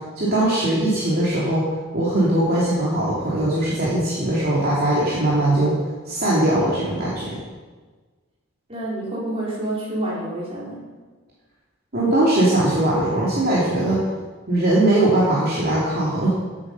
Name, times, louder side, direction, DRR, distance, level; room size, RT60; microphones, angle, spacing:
voice 1, 0.2-1.7 1.9-5.8 6.0-7.4 11.9-14.0 14.5-16.3, right 1 dB, 45° right, -7 dB, 2.8 m, -20 dB
voice 2, 8.7-10.9, right 1 dB, 30° right, -6 dB, 4.8 m, -28 dB
15.0 x 8.7 x 5.7 m, 1.4 s
head